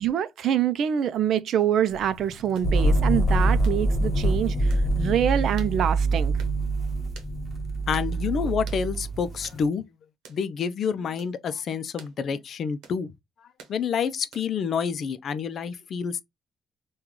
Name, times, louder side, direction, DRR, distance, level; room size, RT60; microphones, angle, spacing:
voice 1, 0.0-6.3, right 9 dB, 70° right, 0.4 m, -25 dB
sound 1, 1.9-9.7, right 2 dB, 35° right, 1.0 m, -47 dB
sound 2, 2.5-2.7 3.6-3.8 4.7-4.9 5.6-5.8 6.4-6.6 7.1-7.3 7.9-8.1 8.7-8.9 9.4-9.6 10.2-10.4 11.2-11.4 12.0-12.2 12.8-13.0 13.6-13.8 14.3-14.6, right 6 dB, 90° right, 0.8 m, -48 dB
sound 3, 2.6-9.4, right 2 dB, 35° left, 1.2 m, -25 dB
voice 2, 7.9-9.9 10.3-13.1 13.7-16.2, left 6 dB, 60° left, 0.4 m, -28 dB
3.7 x 2.3 x 3.0 m
cardioid pair, 90°, 0 cm